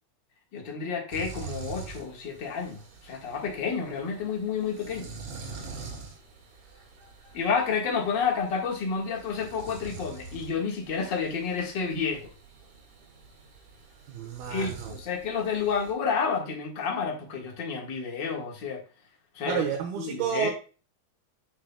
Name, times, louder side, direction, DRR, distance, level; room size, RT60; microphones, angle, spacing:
voice 1, 0.5-5.1 7.3-12.3 14.5-18.8 19.3-19.6 20.0-20.5, left 5 dB, 45° left, 1.6 m, -30 dB
sound 1, 1.1-15.9, right 4 dB, 45° right, 2.5 m, -45 dB
voice 2, 14.1-14.9 19.5-20.5, right 7 dB, 85° right, 3.0 m, -30 dB
9.8 x 6.4 x 2.3 m
omnidirectional pair, 4.3 m